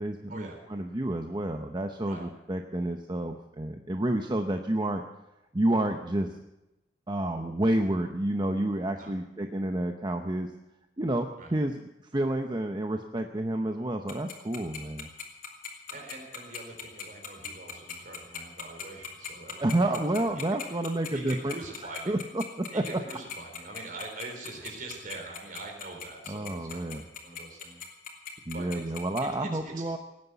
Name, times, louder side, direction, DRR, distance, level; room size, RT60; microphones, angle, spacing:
voice 1, 0.0-5.0 5.5-6.3 7.1-10.5 11.0-11.8 12.1-15.1 19.6-21.5 21.8-23.0 26.3-27.0 28.5-30.0, right 1 dB, 25° right, 5 dB, 0.8 m, -29 dB
Tick-tock, 14.1-29.2, left 8 dB, 50° left, 3.0 m, -39 dB
voice 2, 15.9-20.2 21.1-22.2 22.7-27.8 28.5-28.8 29.4-29.8, right 3 dB, 50° right, 2 dB, 4.0 m, -43 dB
18.5 x 9.6 x 8.2 m, 0.97 s
head